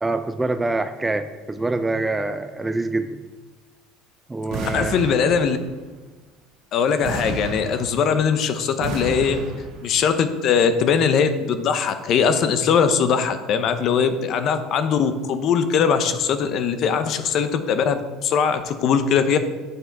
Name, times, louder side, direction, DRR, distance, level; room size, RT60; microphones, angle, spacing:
voice 1, 0.0-3.2 4.3-4.9, right 2 dB, 10° right, 10 dB, 0.3 m, -25 dB
sound 1, 4.5-5.8 7.0-8.3 8.8-9.9, right 3 dB, 60° right, 1.5 m, -31 dB
voice 2, 4.7-5.6 6.7-9.4 9.8-19.4, left 6 dB, 45° left, 9 dB, 0.7 m, -21 dB
7.1 x 6.5 x 4.6 m, 1.3 s
cardioid pair, 145°, 0 cm